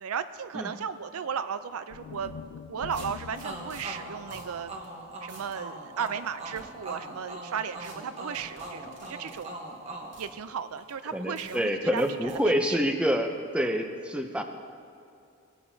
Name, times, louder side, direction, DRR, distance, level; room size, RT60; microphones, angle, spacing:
voice 1, 0.0-2.3 2.7-4.7 5.2-9.5 10.2-12.5, right 7 dB, 85° right, 12 dB, 0.4 m, -35 dB
sound 1, 1.9-6.1, left 7 dB, 85° left, 0.3 m, -46 dB
sound 2, 2.1-2.3 2.9-3.8 4.3-4.5 4.8-4.9 5.3-5.6 6.1-6.6 7.8-7.9 8.3-9.4 10.1-10.3 10.9-11.0 11.4-11.6 12.0-12.4, right 3 dB, 55° right, 2.7 m, -50 dB
sound 3, 3.4-11.0, right 2 dB, 30° right, 1.0 m, -41 dB
voice 2, 11.1-14.4, equal, 5° right, 5 dB, 0.5 m, -27 dB
18.5 x 8.5 x 2.7 m, 2.5 s
head